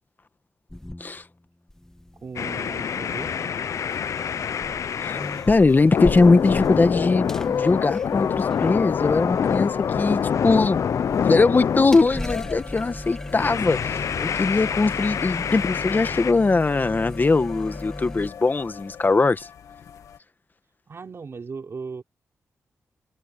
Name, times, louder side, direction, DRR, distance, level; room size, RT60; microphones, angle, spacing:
sound 1, 0.7-1.4 1.7-18.3, left 1 dB, 10° left, 1.7 m, -38 dB
voice 1, 2.1-3.5 20.9-22.0, right 5 dB, 55° right, 3.5 m, -37 dB
sound 2, 2.4-5.5 5.9-12.6 13.3-16.3, left 7 dB, 70° left, 0.6 m, -26 dB
sound 3, 5.2-20.2, left 8 dB, 85° left, 2.1 m, -41 dB
voice 2, 5.5-10.8 11.2-19.5, left 3 dB, 35° left, 1.3 m, -21 dB
cardioid pair, 70°, 5 cm